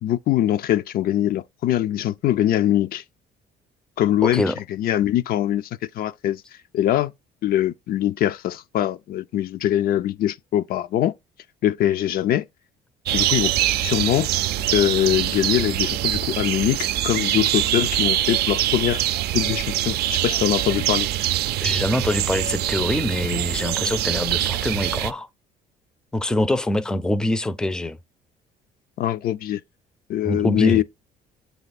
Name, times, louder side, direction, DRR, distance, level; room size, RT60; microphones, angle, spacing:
voice 1, 0.0-3.0 4.0-5.7 5.9-6.4 6.7-7.1 7.4-11.1 11.6-12.5 13.1-13.5 13.8-14.3 14.7-19.0 19.3-21.1 29.0-29.6 30.1-30.8, left 12 dB, 60° left, 0.4 m, -22 dB
voice 2, 4.2-4.6 21.6-25.3 26.1-28.0 30.2-30.8, left 1 dB, 5° left, 0.5 m, -24 dB
sound 1, 13.1-25.1, right 13 dB, 70° right, 0.4 m, -24 dB
7.3 x 3.4 x 4.0 m
cardioid pair, 110°, 17 cm